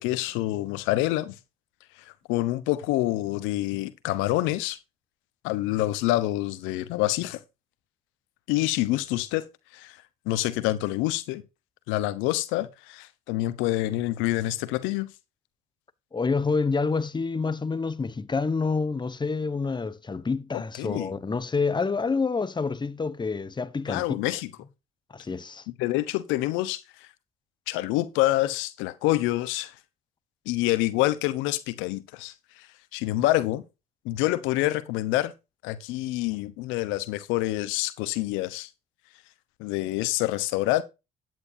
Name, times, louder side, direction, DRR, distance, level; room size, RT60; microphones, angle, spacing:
voice 1, 0.0-1.4 2.0-4.8 5.4-7.4 8.5-9.5 9.7-10.0 10.3-11.4 11.9-15.1 20.8-21.1 23.9-24.5 25.8-27.1 27.7-29.7 30.5-32.7 32.9-33.6 34.0-35.3 35.6-38.7 39.6-40.8, left 16 dB, 80° left, 1.0 m, -27 dB
voice 2, 16.1-24.2 25.1-25.7, left 4 dB, 20° left, 1.2 m, -28 dB
13.0 x 9.5 x 2.7 m
supercardioid pair, 65°, 20 cm